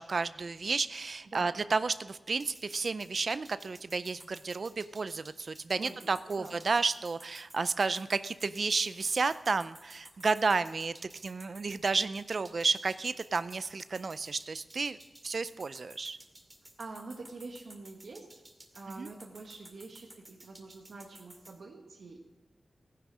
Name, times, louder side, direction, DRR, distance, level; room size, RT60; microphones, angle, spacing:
voice 1, 0.0-15.0 15.2-16.2 19.0-19.1, right 4 dB, 60° right, 14 dB, 0.4 m, -32 dB
voice 2, 1.3-1.6 5.8-6.6 16.8-18.4 18.7-22.2, right 3 dB, 85° right, 1 dB, 1.4 m, -46 dB
sound 1, 2.4-21.5, right 1 dB, 20° right, 2.2 m, -54 dB
15.0 x 10.5 x 6.2 m, 1.2 s
wide cardioid pair, 100°, 0 cm